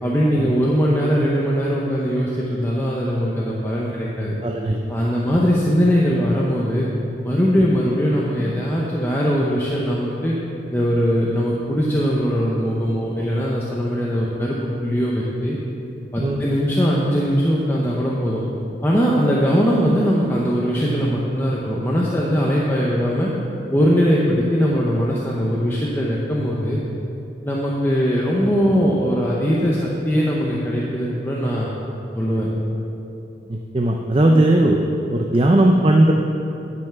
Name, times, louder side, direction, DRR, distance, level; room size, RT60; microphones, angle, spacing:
voice 1, 0.0-4.3 4.9-6.9 7.2-10.3 10.7-15.6 16.1-18.4 18.8-23.3 23.7-26.8 27.4-31.7 32.1-32.5, equal, 15° left, -5 dB, 0.7 m, -20 dB
voice 2, 4.4-4.8 16.2-16.4 33.5-34.8 35.1-36.1, right 1 dB, 30° right, 2 dB, 0.5 m, -17 dB
10.5 x 5.7 x 5.8 m, 2.9 s
head